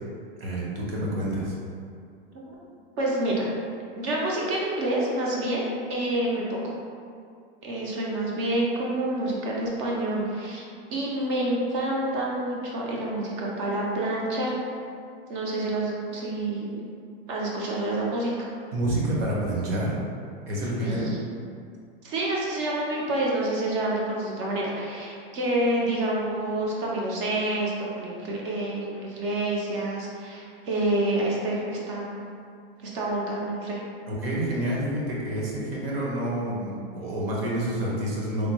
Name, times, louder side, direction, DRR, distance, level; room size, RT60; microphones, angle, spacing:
voice 1, 0.4-1.5 18.7-19.9 20.5-21.0 34.1-38.5, right 1 dB, 80° right, -4 dB, 1.0 m, -28 dB
voice 2, 3.0-3.5 4.0-6.7 7.6-10.6 10.9-14.6 15.3-16.8 17.3-18.5 20.8-21.1 22.0-32.2 32.8-33.8, right 1 dB, 30° right, -3 dB, 0.4 m, -28 dB
3.4 x 2.2 x 2.9 m, 2.3 s
supercardioid pair, 175°, 30 cm